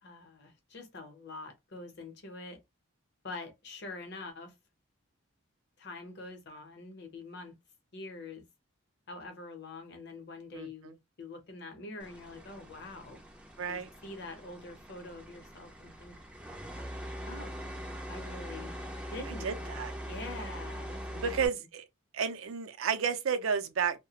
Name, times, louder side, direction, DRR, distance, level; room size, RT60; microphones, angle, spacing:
voice 1, 0.0-2.6 3.2-4.5 5.8-7.5 7.9-8.4 9.1-13.2 13.7-16.2 17.3-17.5 18.1-18.7 19.1-21.4, left 3 dB, 50° left, 0.7 m, -45 dB
voice 2, 10.5-11.0 13.6-13.9 19.4-19.9 21.1-21.9 22.1-24.0, right 6 dB, 70° right, 0.5 m, -32 dB
sound 1, 12.0-21.5, equal, 5° right, 0.4 m, -42 dB
2.3 x 2.1 x 2.8 m
head